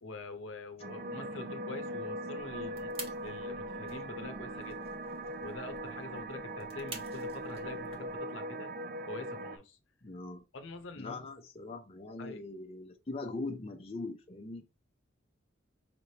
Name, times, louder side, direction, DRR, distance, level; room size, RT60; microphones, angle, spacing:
voice 1, 0.0-2.9 3.2-4.8 5.4-8.7 9.1-9.8 10.5-11.3 12.2-12.4, left 3 dB, 70° left, 0.8 m, -45 dB
sound 1, 0.8-9.6, right 1 dB, 50° right, 0.5 m, -40 dB
sound 2, 2.4-8.2, right 3 dB, 30° right, 1.0 m, -50 dB
voice 2, 10.0-10.4 11.0-14.7, left 3 dB, 30° left, 0.6 m, -41 dB
5.1 x 3.2 x 2.8 m
head